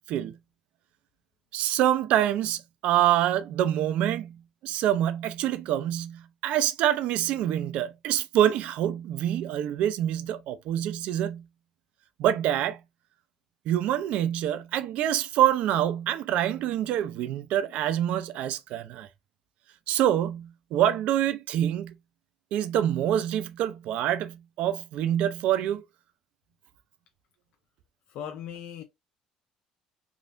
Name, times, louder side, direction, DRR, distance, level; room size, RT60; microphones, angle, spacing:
voice 1, 1.5-11.4 12.2-12.8 13.7-19.1 19.9-21.9 22.5-25.8, right 11 dB, 70° right, 0.4 m, -26 dB
voice 2, 28.1-28.8, left 9 dB, 65° left, 0.4 m, -38 dB
3.5 x 2.4 x 2.5 m
cardioid pair, 135°, 2 cm